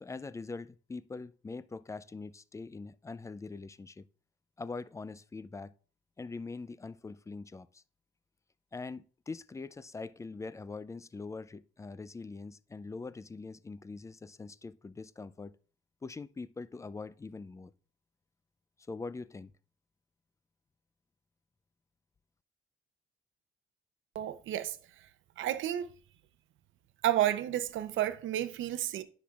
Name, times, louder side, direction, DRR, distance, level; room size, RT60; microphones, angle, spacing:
voice 1, 0.0-4.1 4.6-5.7 6.2-7.8 8.7-15.6 16.0-17.7 18.9-19.5, left 3 dB, 15° left, 0.3 m, -43 dB
voice 2, 24.1-24.8 25.4-25.9 27.0-29.0, right 12 dB, 75° right, 0.7 m, -31 dB
10.0 x 6.0 x 2.4 m
cardioid pair, 90°, 20 cm